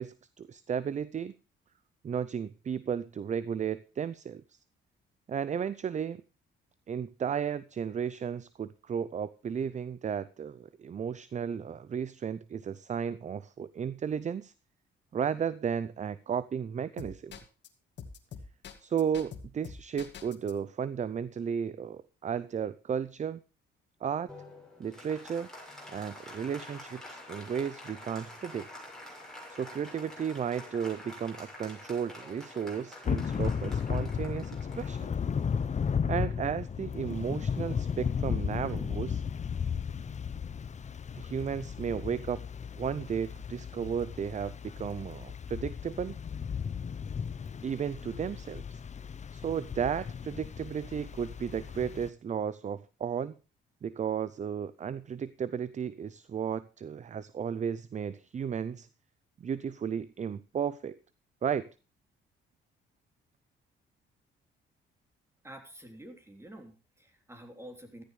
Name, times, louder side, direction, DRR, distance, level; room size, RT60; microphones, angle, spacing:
voice 1, 0.0-1.3 2.0-4.4 5.3-6.2 6.9-14.5 15.1-17.4 18.8-23.4 24.0-24.3 24.8-25.5 25.9-28.7 29.5-35.1 36.1-39.2 41.1-42.4 42.8-46.2 47.6-48.8 49.3-53.3 53.8-58.9 59.4-61.0 61.4-61.7, right 7 dB, 35° right, 0.6 m, -34 dB
sound 1, 17.0-17.7 18.0-20.5, left 7 dB, 60° left, 2.2 m, -44 dB
Applause, 24.3-36.2, left 1 dB, ahead, 7.2 m, -48 dB
Thunder / Rain, 33.0-52.1, left 7 dB, 35° left, 0.8 m, -35 dB
voice 2, 65.4-68.0, right 1 dB, 15° right, 3.7 m, -48 dB
15.0 x 14.0 x 3.3 m
cardioid pair, 90°, 20 cm